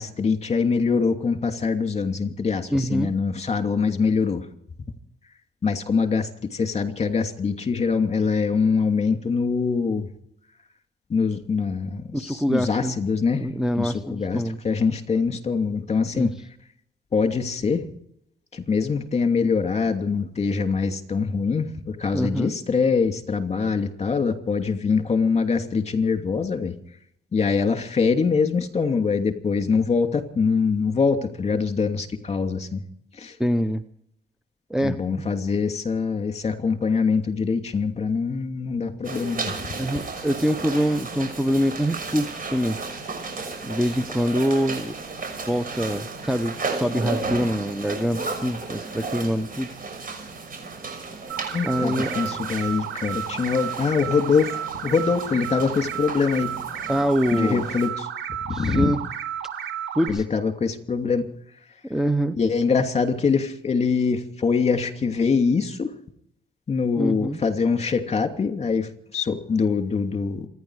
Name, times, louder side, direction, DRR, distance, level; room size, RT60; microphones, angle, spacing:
voice 1, 0.0-4.5 5.6-10.1 11.1-13.5 13.8-16.4 17.1-17.8 18.5-26.7 27.3-32.8 33.2-33.4 34.8-39.6 51.5-56.6 57.3-58.1 58.4-58.9 60.1-61.3 62.4-65.9 66.7-70.5, left 5 dB, 35° left, 7 dB, 2.7 m, -24 dB
voice 2, 2.7-3.1 12.1-12.9 13.3-14.6 16.1-16.3 22.1-22.5 33.4-33.8 34.7-35.0 39.8-42.8 43.6-44.9 45.5-49.7 51.6-52.1 56.9-57.7 58.5-59.0 59.9-60.2 61.9-62.4 67.0-67.4, equal, 5° right, 7 dB, 0.8 m, -24 dB
sound 1, 39.0-57.9, right 3 dB, 45° right, 6.0 m, -34 dB
sound 2, 51.3-60.1, right 9 dB, 80° right, 4.0 m, -32 dB
27.5 x 10.5 x 4.9 m, 0.71 s
cardioid pair, 90°, 20 cm